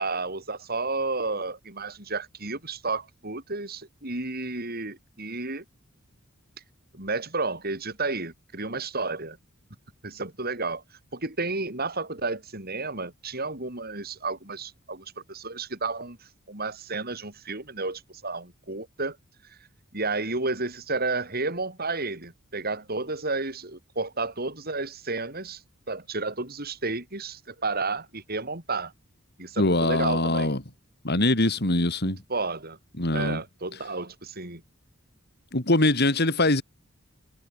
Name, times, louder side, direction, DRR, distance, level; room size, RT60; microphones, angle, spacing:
voice 1, 0.0-5.6 6.9-9.4 10.0-10.8 11.1-16.2 16.5-19.2 19.5-19.6 19.9-25.6 25.9-28.9 29.4-30.5 32.0-32.8 33.1-34.6, right 3 dB, 45° right, 6.7 m, -31 dB
voice 2, 29.6-30.6 31.0-32.2 33.0-33.4 35.5-36.6, left 2 dB, 50° left, 4.0 m, -23 dB
head